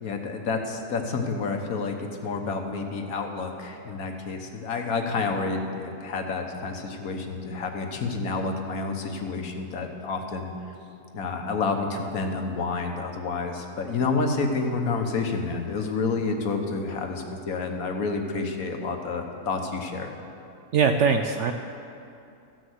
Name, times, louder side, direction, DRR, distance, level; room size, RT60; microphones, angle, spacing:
voice 1, 0.0-10.5 11.1-20.1, left 4 dB, 65° left, 4 dB, 1.5 m, -29 dB
voice 2, 20.7-21.5, right 6 dB, 70° right, 5 dB, 0.7 m, -21 dB
14.5 x 6.4 x 7.9 m, 2.6 s
omnidirectional pair, 1.7 m